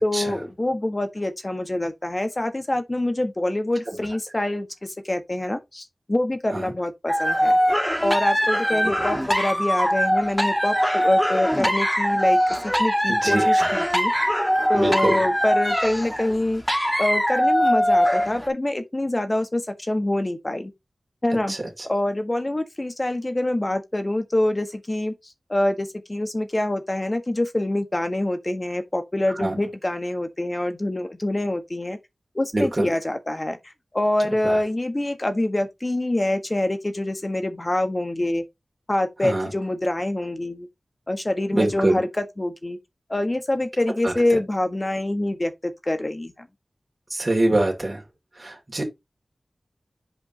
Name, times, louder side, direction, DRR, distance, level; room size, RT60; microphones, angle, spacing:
voice 1, 0.0-7.6 8.0-14.1 14.7-16.6 17.0-20.7 21.2-21.5 21.8-25.1 25.5-32.0 32.3-38.4 38.9-40.7 41.1-42.8 43.1-46.5, left 1 dB, 30° left, 1.4 m, -25 dB
sound 1, 7.1-18.5, equal, 5° left, 1.6 m, -22 dB
voice 2, 13.1-13.7 14.7-15.1 21.5-21.6 29.4-29.6 32.5-32.9 34.4-34.6 39.2-39.5 41.5-42.0 44.0-44.1 47.1-48.0 48.4-48.8, right 1 dB, 35° right, 2.7 m, -23 dB
8.1 x 5.1 x 2.8 m
wide cardioid pair, 70°, 0 cm